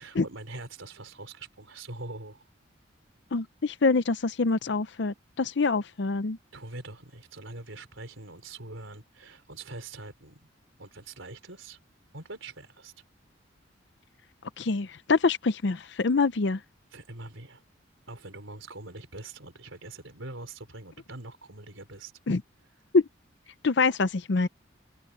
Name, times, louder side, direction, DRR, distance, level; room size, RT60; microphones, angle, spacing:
voice 1, 0.0-2.4 6.5-10.4 10.8-11.8 12.1-12.9 16.9-17.6 18.1-22.1, right 2 dB, 85° right, 4.2 m, -43 dB
voice 2, 3.3-6.4 14.6-16.6 22.3-22.4 22.9-23.0 23.6-24.5, left 4 dB, 60° left, 0.6 m, -25 dB
head